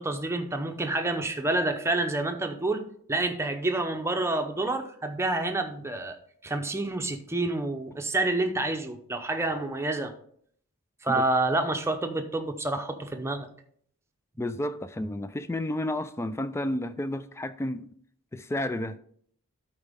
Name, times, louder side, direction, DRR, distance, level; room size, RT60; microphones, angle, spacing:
voice 1, 0.0-2.8 3.1-6.2 6.4-10.1 11.0-13.5, right 2 dB, 10° right, 0.7 m, -28 dB
voice 2, 14.4-17.9 18.3-19.0, left 1 dB, 10° left, 0.3 m, -31 dB
12.5 x 4.4 x 3.6 m
head